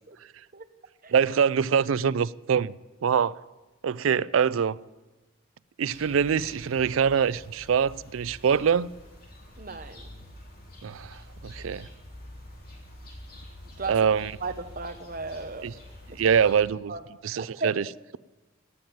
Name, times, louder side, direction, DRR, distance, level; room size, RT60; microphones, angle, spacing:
voice 1, 1.1-2.7 3.0-3.4 3.8-4.8 5.8-8.9 10.8-11.9 13.9-14.3 15.6-15.7 16.2-16.9 17.2-17.9, right 7 dB, 80° right, 0.4 m, -24 dB
sound 1, 5.9-16.6, left 1 dB, 50° left, 3.7 m, -47 dB
voice 2, 9.6-10.1 13.8-14.0 14.4-15.7 16.1-16.2 16.9-17.0 17.4-17.7, right 4 dB, 45° right, 1.1 m, -35 dB
16.5 x 9.2 x 9.3 m
head